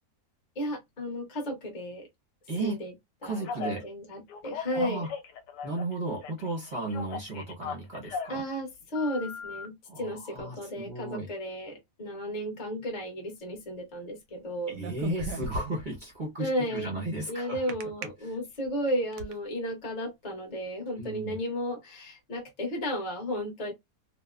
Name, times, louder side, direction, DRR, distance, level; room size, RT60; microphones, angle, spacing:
voice 1, 0.6-2.1 2.6-2.9 3.2-5.1 8.3-14.8 16.4-16.9 17.3-23.7, equal, 35° left, 0.7 m, -34 dB
voice 2, 2.5-2.8 3.2-3.8 4.7-5.1 5.6-8.4 9.9-11.3 14.7-17.7 18.2-18.3 21.0-21.4, right 2 dB, 55° right, 0.5 m, -34 dB
Telephone, 3.4-3.8 4.3-5.9 6.2-8.4 8.9-9.7, left 5 dB, 90° left, 1.2 m, -38 dB
Knuckle Cracking, 14.7-16.0 17.7-18.0 18.7-19.3, right 2 dB, 85° right, 1.2 m, -36 dB
3.0 x 2.0 x 2.2 m
omnidirectional pair, 1.8 m